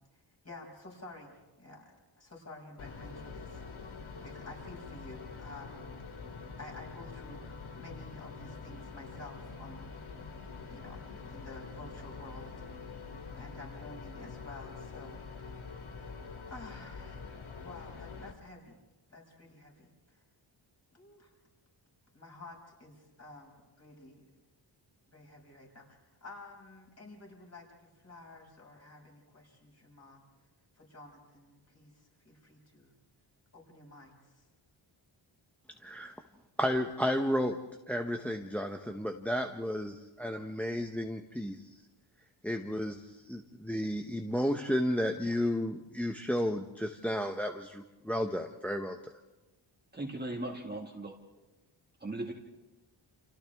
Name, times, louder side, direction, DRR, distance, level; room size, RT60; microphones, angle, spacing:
voice 1, 0.1-1.9 2.2-5.9 6.6-9.9 10.7-13.0 13.3-15.2 16.5-17.4 17.6-18.8 19.1-20.2 20.9-21.3 22.1-24.3 25.1-30.2 30.7-32.9 33.5-34.5, left 2 dB, 30° left, -2 dB, 6.0 m, -51 dB
sound 1, 2.8-18.3, left 4 dB, 80° left, 2.4 m, -45 dB
voice 2, 35.8-36.1 36.6-37.6 37.9-41.8 42.4-49.1, equal, 5° left, 4 dB, 0.9 m, -32 dB
voice 3, 49.9-51.1 52.0-52.3, right 2 dB, 20° right, 1 dB, 1.8 m, -38 dB
29.5 x 28.0 x 3.5 m, 1.1 s
wide cardioid pair, 135°, 49 cm